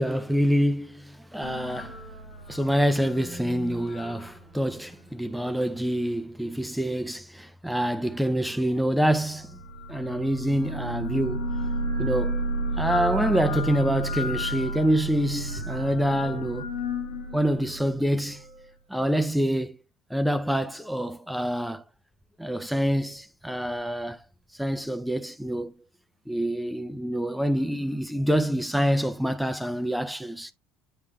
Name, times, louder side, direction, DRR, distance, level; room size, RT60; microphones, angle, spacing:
voice 1, 0.0-2.0 2.5-9.6 9.9-11.7 12.0-12.4 12.8-16.7 17.3-18.4 18.9-19.8 20.1-21.8 22.4-24.2 24.5-25.7 26.3-30.5, equal, ahead, 0.5 m, -26 dB
sound 1, 1.4-5.0 9.3-18.5, right 1 dB, 85° left, 2.4 m, -32 dB
9.8 x 3.5 x 3.1 m
supercardioid pair, 85°, 0 cm